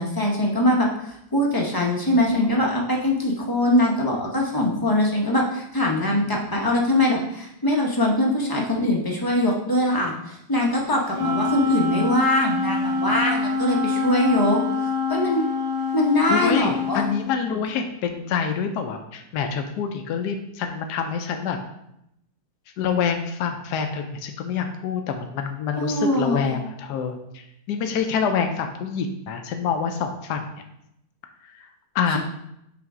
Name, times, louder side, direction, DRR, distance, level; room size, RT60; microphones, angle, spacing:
voice 1, 0.0-15.4 15.9-17.0 25.7-26.6, left 1 dB, 25° left, -1 dB, 0.4 m, -22 dB
Wind instrument woodwind instrument, 11.1-17.2, left 4 dB, 70° right, 2.0 m, -25 dB
voice 2, 13.8-14.2 16.3-21.6 22.8-30.4 31.4-31.7 31.9-32.2, left 6 dB, 80° left, 5 dB, 1.2 m, -26 dB
5.7 x 3.4 x 4.8 m, 0.78 s
omnidirectional pair, 1.8 m